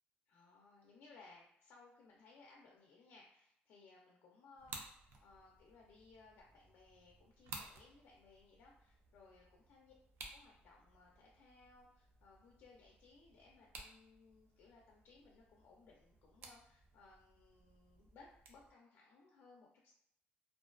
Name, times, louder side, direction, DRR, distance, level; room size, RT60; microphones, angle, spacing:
voice 1, 0.3-4.8 5.2-9.9 10.3-19.9, left 3 dB, 60° left, -1 dB, 0.4 m, -63 dB
sound 1, 4.5-18.7, right 3 dB, 65° right, 0.4 m, -57 dB
2.4 x 2.2 x 2.3 m, 0.75 s
cardioid pair, 175°, 4 cm